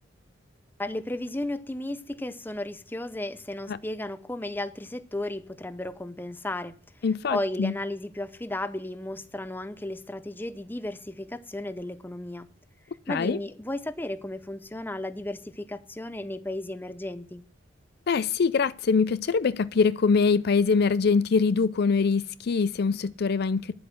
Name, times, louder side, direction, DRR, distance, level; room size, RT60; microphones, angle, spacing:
voice 1, 0.8-6.7 7.3-12.5 13.1-17.4, left 1 dB, 10° left, 0.6 m, -34 dB
voice 2, 7.0-7.7 13.1-13.4 18.1-23.7, left 5 dB, 55° left, 0.4 m, -23 dB
10.5 x 7.9 x 6.2 m
head